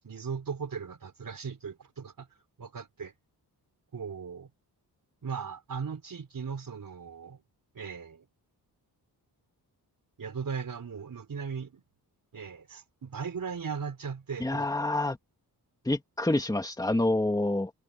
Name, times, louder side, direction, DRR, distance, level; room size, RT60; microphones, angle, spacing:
voice 1, 0.0-2.3 2.6-3.1 3.9-4.5 5.2-7.4 7.7-8.3 10.2-11.8 12.3-14.7, right 6 dB, 55° right, 5.2 m, -38 dB
voice 2, 14.4-15.2 15.9-17.7, left 2 dB, 10° left, 2.1 m, -27 dB
wide cardioid pair, 150°, 40 cm